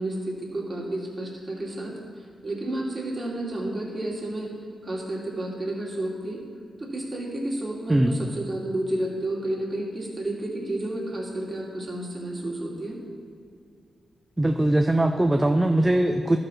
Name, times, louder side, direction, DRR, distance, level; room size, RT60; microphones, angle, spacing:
voice 1, 0.0-1.9 2.4-4.5 4.8-6.4 6.8-13.0, right 1 dB, 30° right, -2 dB, 2.3 m, -31 dB
voice 2, 14.4-16.4, right 1 dB, 15° right, 4 dB, 0.5 m, -21 dB
12.0 x 5.1 x 5.9 m, 2.2 s
cardioid pair, 65°, 0 cm